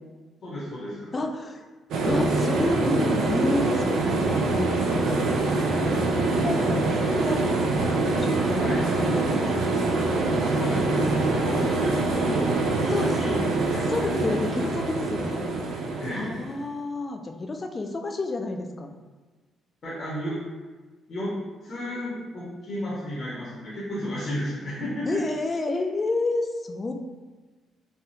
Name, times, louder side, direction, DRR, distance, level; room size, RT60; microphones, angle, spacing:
voice 1, 0.4-1.1 8.5-8.8 10.5-13.4 13.7-14.1 16.0-16.4 19.8-20.4 21.1-21.3 21.6-25.2, equal, 50° left, -7 dB, 0.8 m, -33 dB
voice 2, 1.1-1.6 2.1-5.3 5.7-7.6 8.1-10.1 12.9-13.4 13.8-15.5 16.1-18.9 25.1-26.9, left 2 dB, 30° left, 4 dB, 0.3 m, -30 dB
sound 1, 1.9-16.6, right 2 dB, 80° right, 0.4 m, -24 dB
3.3 x 2.2 x 2.7 m, 1.3 s
cardioid pair, 90°, 0 cm